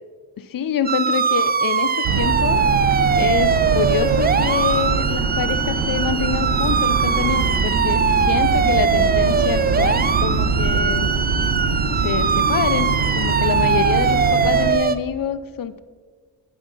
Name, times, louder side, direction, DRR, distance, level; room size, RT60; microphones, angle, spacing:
voice 1, 0.5-2.6 3.2-11.1 11.9-15.8, left 8 dB, 50° left, 14 dB, 0.7 m, -26 dB
sound 1, 0.8-14.9, right 6 dB, 20° right, 0.5 m, -21 dB
sound 2, 2.0-14.7, right 4 dB, 80° right, 1.0 m, -23 dB
9.2 x 8.2 x 5.4 m, 1.5 s
cardioid pair, 80°, 45 cm